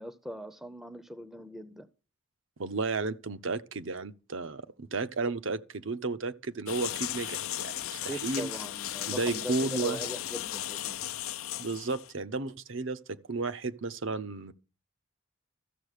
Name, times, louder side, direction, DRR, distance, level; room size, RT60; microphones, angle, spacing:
voice 1, 0.0-1.9 8.0-11.0, equal, ahead, 0.6 m, -40 dB
voice 2, 2.6-8.5 9.1-10.0 11.6-14.5, right 3 dB, 65° right, 0.8 m, -33 dB
sound 1, 6.7-12.1, left 13 dB, 90° left, 0.5 m, -36 dB
14.0 x 7.1 x 6.6 m
head